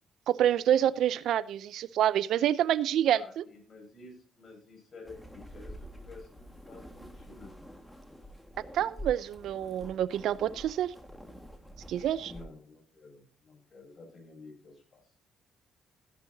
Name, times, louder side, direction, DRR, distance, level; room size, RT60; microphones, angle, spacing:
voice 1, 0.3-3.4 8.7-10.9 11.9-12.3, right 11 dB, 80° right, 17 dB, 0.6 m, -27 dB
voice 2, 3.1-7.5 12.2-15.0, left 3 dB, 45° left, 3 dB, 6.7 m, -51 dB
sound 1, 5.0-12.4, equal, 5° left, 1.9 m, -47 dB
15.5 x 10.5 x 2.8 m, 0.39 s
cardioid pair, 90°, 0 cm